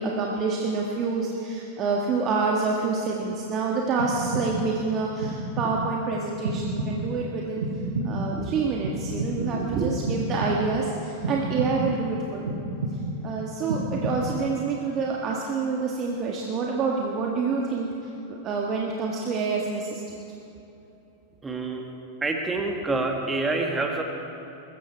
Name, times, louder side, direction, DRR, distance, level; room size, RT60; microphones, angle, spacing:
voice 1, 0.0-7.7 8.0-12.6 13.2-17.9 18.3-20.2, right 4 dB, 30° right, -1 dB, 1.6 m, -27 dB
sound 1, 4.0-4.8 5.2-5.9 6.5-7.2 7.6-8.4 8.8-9.7 10.1-10.9 11.2-12.0 12.5-13.3 13.7-14.5, right 1 dB, 65° right, 2.0 m, -30 dB
voice 2, 21.4-21.9 22.2-24.0, right 3 dB, 15° right, 2 dB, 2.0 m, -27 dB
21.5 x 14.0 x 4.7 m, 2.9 s
figure-of-eight pair, 90°, 0 cm